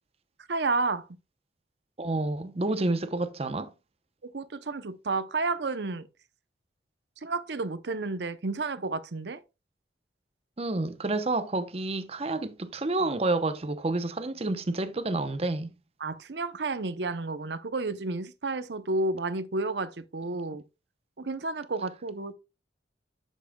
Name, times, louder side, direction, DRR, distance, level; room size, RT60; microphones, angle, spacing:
voice 1, 0.5-1.1 4.2-6.1 7.2-9.4 16.0-20.6 21.2-22.3, right 3 dB, 70° right, 0.7 m, -31 dB
voice 2, 2.0-3.7 10.6-15.7, right 2 dB, 35° right, 0.7 m, -29 dB
10.5 x 7.4 x 2.3 m
head